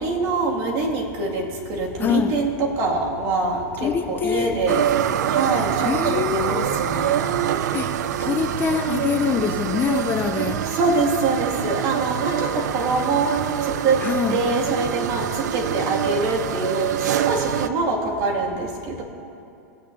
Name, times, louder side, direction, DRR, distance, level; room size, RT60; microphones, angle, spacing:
voice 1, 0.0-1.4 1.7-4.8 5.3-7.4 10.7-13.3 13.6-14.0 14.3-16.9 17.2-19.0, right 3 dB, 45° right, 2.2 m, -24 dB
voice 2, 2.0-2.4 3.8-4.6 5.8-6.6 7.7-10.8 14.0-14.4, left 7 dB, 20° left, 0.4 m, -24 dB
sound 1, 4.7-17.7, right 10 dB, 80° right, 0.4 m, -25 dB
19.0 x 8.7 x 2.7 m
supercardioid pair, 130°, 9 cm